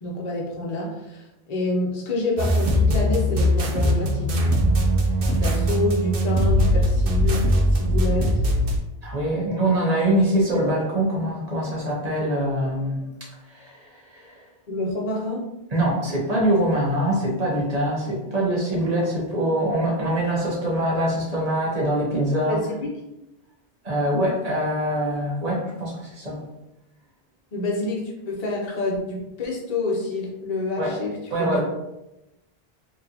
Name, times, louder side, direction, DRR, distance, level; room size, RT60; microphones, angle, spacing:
voice 1, 0.0-4.4 5.4-8.4 9.3-9.5 14.7-15.5 22.5-22.9 27.5-31.6, left 2 dB, 45° left, -2 dB, 0.8 m, -28 dB
sound 1, 2.4-8.8, equal, 65° right, 0.8 m, -20 dB
voice 2, 9.0-13.0 13.5-14.4 15.7-22.6 23.8-26.4 30.8-31.0 31.3-31.6, right 1 dB, 40° right, -4 dB, 1.1 m, -24 dB
4.1 x 2.7 x 2.8 m, 0.92 s
omnidirectional pair, 1.1 m